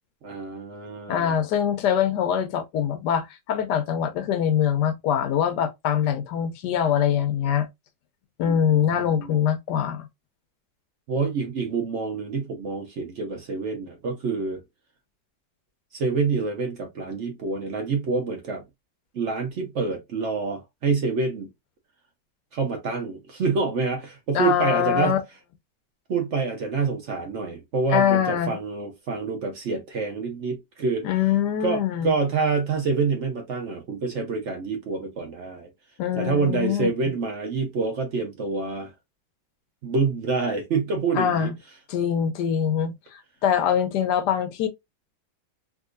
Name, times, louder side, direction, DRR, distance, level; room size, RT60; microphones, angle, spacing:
voice 1, 0.2-1.4 8.5-9.4 11.1-14.6 15.9-18.6 19.1-21.5 22.5-25.2 26.1-31.0 31.6-35.7 36.1-38.9 39.8-41.5, right 4 dB, 65° right, 0.7 m, -27 dB
voice 2, 1.1-7.7 8.4-10.1 24.3-25.2 27.9-28.6 31.0-32.1 36.0-36.9 41.1-41.5 41.9-44.7, left 9 dB, 75° left, 1.0 m, -23 dB
3.6 x 2.6 x 2.4 m
omnidirectional pair, 2.1 m